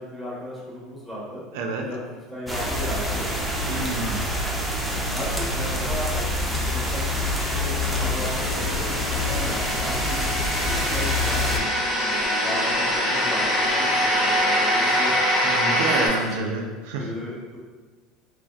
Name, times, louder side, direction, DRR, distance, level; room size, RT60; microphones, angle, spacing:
voice 1, 0.0-1.4 1.8-3.3 5.1-6.3 6.6-10.3 10.6-11.7 12.0-15.1 15.9-16.1 16.3-16.6 17.0-17.6, equal, 10° left, -7 dB, 0.9 m, -35 dB
voice 2, 1.5-1.9 3.7-4.2 15.4-17.1, right 3 dB, 75° right, 2 dB, 0.3 m, -28 dB
sound 1, 2.5-11.6, left 1 dB, 5° right, 0.4 m, -26 dB
sound 2, 7.4-15.0, left 4 dB, 55° left, 0.6 m, -40 dB
sound 3, 7.7-16.1, equal, 40° left, 1.1 m, -24 dB
3.0 x 2.6 x 2.2 m, 1.4 s
supercardioid pair, 125°, 0 cm